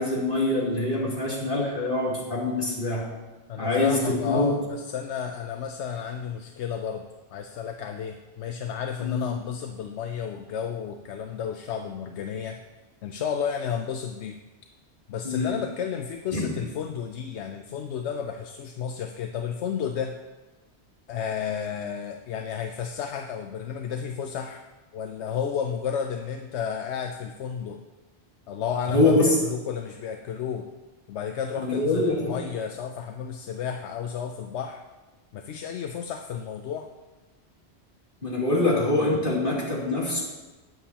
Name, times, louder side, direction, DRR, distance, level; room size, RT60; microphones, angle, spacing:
voice 1, 0.0-3.0 3.6-4.6 9.0-9.3 15.2-15.6 16.3-16.5 28.9-29.3 31.6-32.4 38.2-40.2, left 2 dB, 50° left, -6 dB, 3.0 m, -24 dB
voice 2, 3.5-12.6 13.0-14.3 15.1-20.2 21.1-24.6 24.9-27.8 28.5-30.7 31.1-34.8 35.3-36.9, left 7 dB, 80° left, 5 dB, 0.9 m, -32 dB
19.5 x 7.2 x 2.9 m, 1.2 s
omnidirectional pair, 1.1 m